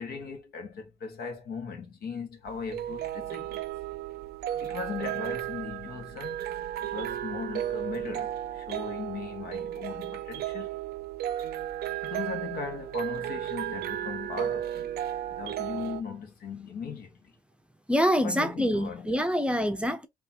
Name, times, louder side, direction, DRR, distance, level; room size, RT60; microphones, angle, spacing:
voice 1, 0.0-3.6 4.6-10.7 12.0-14.9 15.3-17.3 18.2-19.2, left 5 dB, 75° left, 1.0 m, -38 dB
sound 1, 2.5-16.0, right 12 dB, 85° right, 0.4 m, -34 dB
voice 2, 17.9-20.1, equal, 5° right, 0.6 m, -26 dB
3.6 x 2.4 x 2.7 m
cardioid pair, 90°, 16 cm